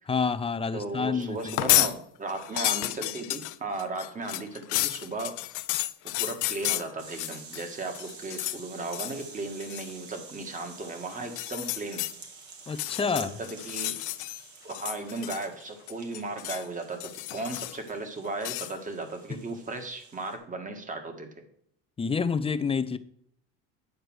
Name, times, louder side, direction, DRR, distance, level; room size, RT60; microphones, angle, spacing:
voice 1, 0.1-1.6 12.7-13.4 22.0-23.0, left 5 dB, 20° left, 0.5 m, -28 dB
voice 2, 0.7-5.4 6.2-12.0 13.0-14.0 14.6-21.3, right 3 dB, 25° right, 1.7 m, -36 dB
sound 1, 1.4-1.9 2.3-7.7 7.9-8.6 8.9-9.2 9.6-9.9 11.2-12.1 12.7-14.4 14.7-15.6 15.9-16.7 17.0-17.9 18.4-18.7, left 18 dB, 65° left, 0.6 m, -31 dB
sound 2, 7.0-20.4, right 4 dB, 60° right, 2.3 m, -49 dB
9.6 x 4.9 x 6.2 m
cardioid pair, 120°, 32 cm